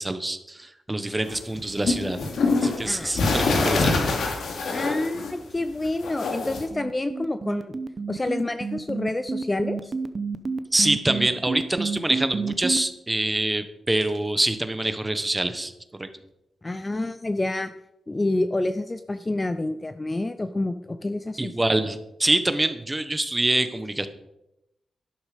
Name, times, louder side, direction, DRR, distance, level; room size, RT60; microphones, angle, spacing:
voice 1, 0.0-4.0 10.7-15.7 16.0-16.1 21.4-24.1, right 1 dB, 15° right, 10 dB, 1.0 m, -25 dB
sound 1, 1.2-5.6 5.8-6.6, left 3 dB, 70° left, 2.7 m, -25 dB
voice 2, 2.9-3.2 3.9-4.2 4.7-7.8 8.1-9.9 16.6-17.7 18.1-21.5, left 2 dB, 20° left, 11 dB, 0.5 m, -28 dB
sound 2, 6.4-12.8, right 4 dB, 35° right, 0.8 m, -29 dB
12.0 x 11.5 x 5.1 m, 0.87 s
wide cardioid pair, 135°, 0 cm